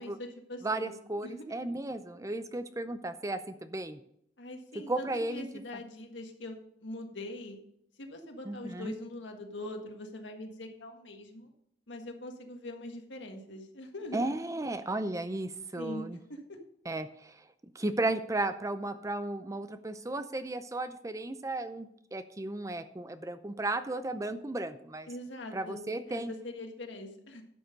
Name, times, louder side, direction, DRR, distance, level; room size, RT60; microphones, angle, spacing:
voice 1, 0.0-1.5 4.4-7.6 8.0-11.5 11.9-14.3 15.7-16.4 25.1-27.4, left 1 dB, 90° left, 4 dB, 1.6 m, -43 dB
voice 2, 0.6-4.0 4.9-5.5 8.5-8.9 14.1-16.2 16.9-17.4 17.7-25.1 25.5-26.3, right 2 dB, 20° right, 11 dB, 0.5 m, -34 dB
11.5 x 6.4 x 5.3 m, 0.73 s
head